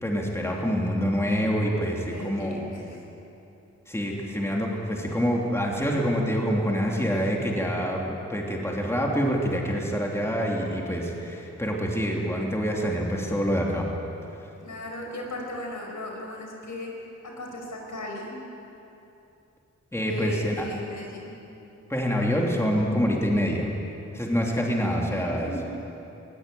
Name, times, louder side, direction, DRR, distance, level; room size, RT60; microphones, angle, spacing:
voice 1, 0.0-2.7 3.9-13.9 19.9-20.5 21.9-23.7 24.1-25.5, equal, 10° left, -2 dB, 3.1 m, -26 dB
voice 2, 2.0-3.0 4.9-5.4 14.6-16.9 17.2-18.4 20.0-21.3 24.5-24.8 25.3-25.6, left 1 dB, 85° left, 0 dB, 5.2 m, -37 dB
20.5 x 20.0 x 9.2 m, 2.8 s
wide cardioid pair, 130°, 29 cm